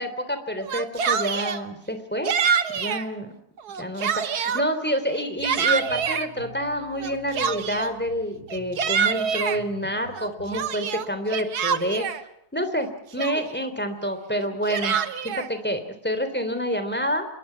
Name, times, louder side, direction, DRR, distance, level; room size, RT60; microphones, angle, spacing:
voice 1, 0.0-2.3 2.7-3.3 3.8-12.1 12.5-17.3, equal, 5° left, 8 dB, 3.1 m, -28 dB
Yell, 0.6-1.6 2.3-3.1 3.6-4.7 5.1-6.3 7.0-8.0 8.5-9.6 10.1-12.2 12.8-12.9 13.2-13.7 14.4-15.5, right 7 dB, 80° right, 1.7 m, -26 dB
sound 1, 5.4-10.7, left 2 dB, 70° left, 5.2 m, -48 dB
26.5 x 22.5 x 5.8 m, 0.79 s
omnidirectional pair, 1.6 m